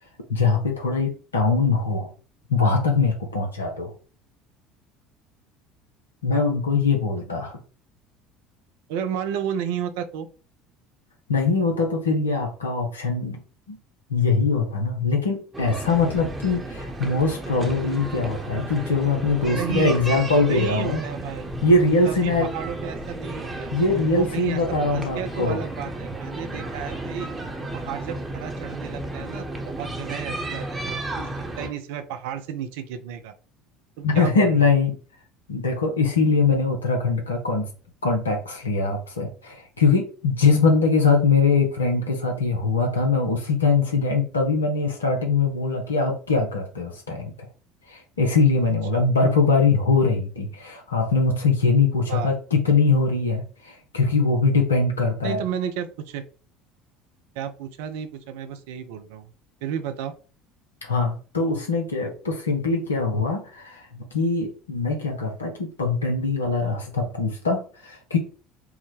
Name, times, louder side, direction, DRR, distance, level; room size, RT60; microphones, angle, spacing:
voice 1, 0.3-2.1 2.5-3.9 6.2-7.6 11.3-13.4 13.7-13.8 14.1-21.0 21.6-22.5 23.7-25.6 34.0-34.9 35.5-37.7 38.0-47.3 47.9-55.4 60.8-68.2, left 4 dB, 80° left, 2 dB, 0.6 m, -22 dB
voice 2, 8.9-10.3 19.5-21.5 22.0-23.7 24.1-24.6 24.9-27.3 27.7-33.3 34.0-34.7 48.9-49.0 52.1-52.3 55.2-56.2 57.4-59.3 59.6-60.1, right 8 dB, 65° right, 9 dB, 0.4 m, -32 dB
sound 1, 15.5-31.7, right 2 dB, 20° right, 0.9 m, -33 dB
4.7 x 2.1 x 3.2 m, 0.37 s
figure-of-eight pair, 65°, 0 cm